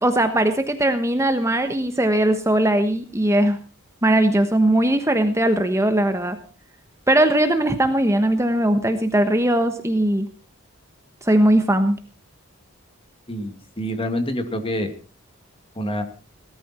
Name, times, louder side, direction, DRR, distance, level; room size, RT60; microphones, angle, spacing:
voice 1, 0.0-3.6 4.0-6.4 7.1-10.3 11.2-12.0, right 1 dB, 15° right, 8 dB, 1.2 m, -19 dB
voice 2, 13.3-14.9 15.8-16.0, equal, 25° left, 6 dB, 2.3 m, -26 dB
18.5 x 13.0 x 4.4 m, 0.35 s
head